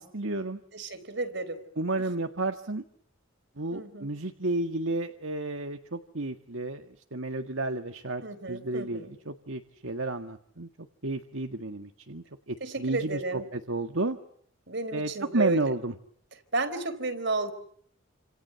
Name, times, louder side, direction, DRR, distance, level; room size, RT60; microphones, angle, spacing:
voice 1, 0.0-0.6 1.8-2.8 3.6-8.2 8.5-10.7 11.0-13.2 13.5-14.2 14.9-15.9, right 2 dB, 75° right, 6 dB, 1.8 m, -32 dB
voice 2, 0.7-1.6 3.7-4.1 8.2-9.1 12.6-13.5 14.7-15.7 16.5-17.5, right 3 dB, 60° right, 11 dB, 4.2 m, -32 dB
29.5 x 27.5 x 7.0 m, 0.64 s
head